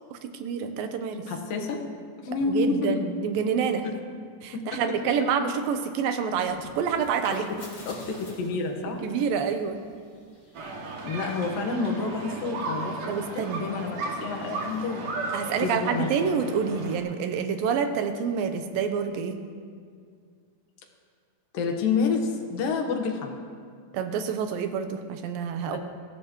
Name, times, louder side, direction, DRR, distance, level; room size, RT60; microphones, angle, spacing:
voice 1, 0.1-1.2 2.5-3.9 4.4-7.5 9.0-9.8 13.1-13.6 15.3-19.4 23.9-25.8, right 6 dB, 85° right, 7 dB, 2.7 m, -27 dB
voice 2, 1.3-1.8 2.2-2.9 4.5-4.8 6.6-6.7 7.3-7.6 7.8-9.0 11.0-15.3 15.6-16.1 21.5-23.4 25.7-25.8, left 4 dB, 75° left, 3 dB, 3.1 m, -29 dB
sound 1, 6.4-12.1, left 2 dB, 40° left, 4.0 m, -50 dB
sound 2, 10.5-17.0, right 3 dB, 70° right, 3.5 m, -35 dB
22.0 x 16.0 x 3.1 m, 2.1 s
omnidirectional pair, 4.0 m